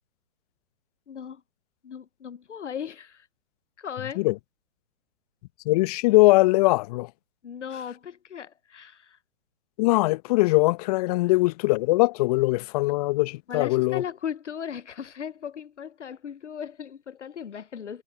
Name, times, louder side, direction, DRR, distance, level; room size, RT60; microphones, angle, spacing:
voice 1, 1.1-1.4 1.8-3.3 3.8-4.2 7.4-9.2 13.5-18.0, left 8 dB, 75° left, 0.9 m, -37 dB
voice 2, 5.6-7.1 9.8-14.0, left 21 dB, 35° left, 1.0 m, -21 dB
figure-of-eight pair, 120°, 36 cm